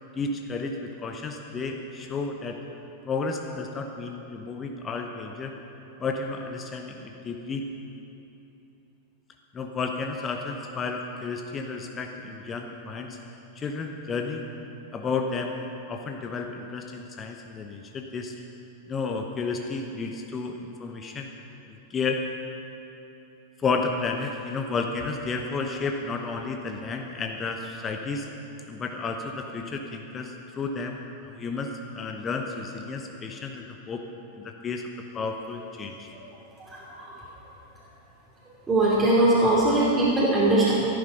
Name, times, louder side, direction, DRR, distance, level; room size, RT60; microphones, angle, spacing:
voice 1, 0.2-2.6 3.1-5.5 6.0-7.6 9.5-13.2 13.5-14.5 14.9-15.6 15.9-18.4 18.9-21.3 21.7-22.2 23.6-28.3 28.7-34.0 34.4-34.8 35.1-36.1, left 4 dB, 25° left, 3 dB, 0.9 m, -32 dB
voice 2, 36.6-37.2 38.7-40.7, right 2 dB, 15° right, -7 dB, 2.7 m, -21 dB
14.0 x 11.5 x 5.4 m, 2.9 s
figure-of-eight pair, 90°, 0 cm